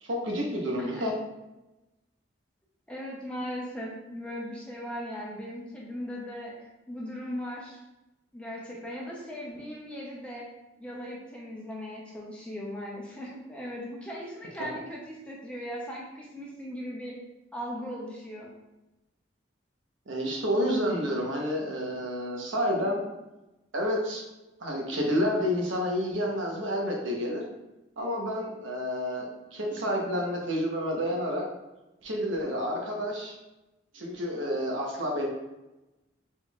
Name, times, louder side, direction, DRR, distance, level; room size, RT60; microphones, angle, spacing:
voice 1, 0.0-1.1 20.1-23.0 23.7-24.2 24.6-27.4 28.0-31.4 32.0-33.4 33.9-35.3, equal, 85° right, -1 dB, 0.9 m, -29 dB
voice 2, 2.9-7.8 8.3-10.5 10.8-17.2 17.5-18.5, equal, 5° left, -4 dB, 0.7 m, -38 dB
4.4 x 3.7 x 2.4 m, 1.0 s
head